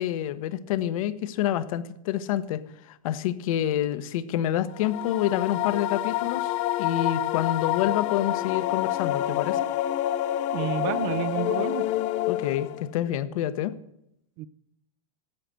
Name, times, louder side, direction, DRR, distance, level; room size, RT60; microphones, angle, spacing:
voice 1, 0.0-6.5 6.8-9.7 12.3-13.7, left 11 dB, 70° left, 13 dB, 0.9 m, -28 dB
sound 1, 4.7-12.9, left 14 dB, 40° left, 0.5 m, -28 dB
voice 2, 10.5-11.8 14.4-14.5, right 12 dB, 50° right, 19 dB, 0.6 m, -30 dB
11.5 x 7.7 x 6.8 m, 0.78 s
supercardioid pair, 130°, 18 cm